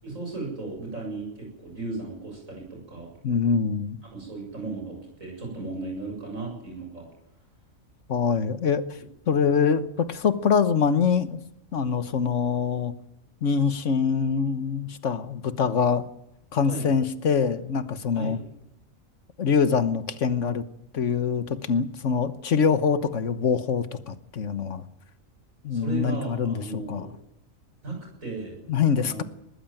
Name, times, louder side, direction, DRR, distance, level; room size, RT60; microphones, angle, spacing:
voice 1, 0.0-3.1 4.1-7.1 9.2-9.4 16.7-16.9 18.2-18.4 25.7-27.1 27.8-28.7 29.0-29.2, right 3 dB, 80° right, 0 dB, 8.0 m, -35 dB
voice 2, 3.2-4.0 8.1-8.8 9.3-11.4 11.7-12.9 13.4-16.0 16.5-18.4 19.4-20.6 20.9-24.8 25.6-27.1 28.7-29.2, left 6 dB, 65° left, 11 dB, 1.4 m, -24 dB
20.0 x 14.5 x 9.0 m, 0.84 s
omnidirectional pair, 1.4 m